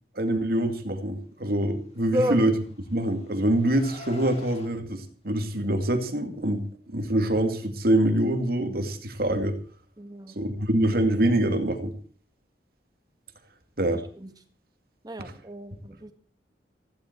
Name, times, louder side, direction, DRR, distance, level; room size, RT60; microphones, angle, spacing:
voice 1, 0.2-2.5 2.9-9.6 10.4-11.9 13.8-14.0, right 1 dB, 60° right, 7 dB, 2.5 m, -25 dB
Car, 2.2-4.7, left 2 dB, 40° left, 3.4 m, -47 dB
voice 2, 10.0-10.4 13.9-14.3 15.0-16.1, equal, 20° right, 8 dB, 1.9 m, -31 dB
16.5 x 15.5 x 4.6 m, 0.43 s
head